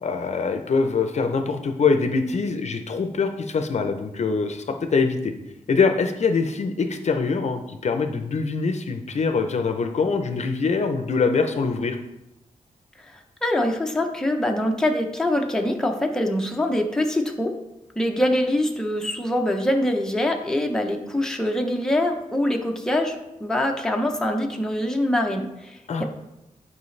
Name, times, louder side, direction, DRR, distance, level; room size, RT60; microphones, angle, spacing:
voice 1, 0.0-5.3 5.7-12.0 25.9-26.0, left 4 dB, 55° left, 7 dB, 0.6 m, -23 dB
voice 2, 13.1-17.5 18.0-26.0, left 1 dB, 5° left, 2 dB, 0.7 m, -24 dB
9.6 x 4.9 x 3.2 m, 0.92 s
wide cardioid pair, 135°, 14 cm